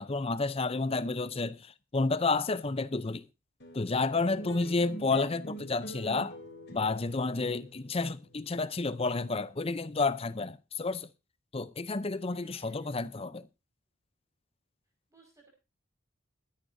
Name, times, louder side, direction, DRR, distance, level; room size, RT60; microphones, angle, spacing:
voice 1, 0.0-3.2 3.7-6.4 6.7-11.1 11.5-13.5, left 3 dB, 30° left, 0.6 m, -30 dB
sound 1, 3.6-10.2, right 1 dB, 50° left, 3.4 m, -46 dB
voice 2, 12.3-13.1 15.1-15.5, right 2 dB, 15° right, 5.3 m, -61 dB
22.5 x 10.0 x 2.7 m
head